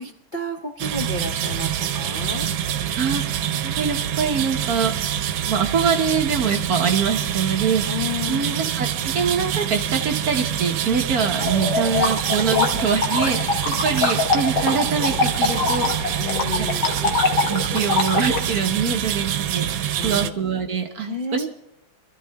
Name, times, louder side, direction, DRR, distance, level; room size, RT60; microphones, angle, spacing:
voice 1, 0.0-2.5 7.9-8.6 12.5-12.6 16.2-16.9 19.7-20.3 21.1-21.5, left 2 dB, 45° left, 2 dB, 0.7 m, -31 dB
sound 1, 0.8-20.3, right 10 dB, 85° right, 1.5 m, -26 dB
voice 2, 3.0-5.1 5.4-15.9 16.5-17.1 17.5-21.5, right 6 dB, 55° right, 4 dB, 1.3 m, -24 dB
sound 2, 11.4-18.4, left 4 dB, 60° left, 1.8 m, -23 dB
27.0 x 13.5 x 2.3 m, 0.83 s
omnidirectional pair, 2.1 m